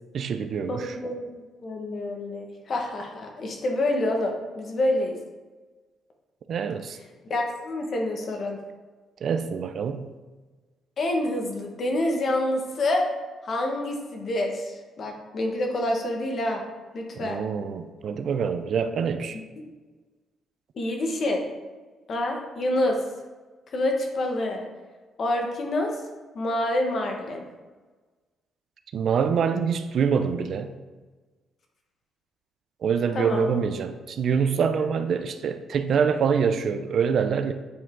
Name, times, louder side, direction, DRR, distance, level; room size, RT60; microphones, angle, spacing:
voice 1, 0.1-0.9 6.5-7.0 9.2-10.1 17.2-19.4 28.9-30.7 32.8-37.5, right 6 dB, 60° right, 8 dB, 0.5 m, -25 dB
voice 2, 0.7-5.2 7.3-8.6 11.0-13.1 13.4-16.6 16.9-17.4 19.6-19.7 20.7-21.4 22.1-23.0 23.7-24.7 25.2-25.9 26.3-27.4 33.1-33.5, left 1 dB, 55° left, 2 dB, 1.4 m, -27 dB
8.5 x 4.5 x 3.8 m, 1.3 s
cardioid pair, 90°, 0 cm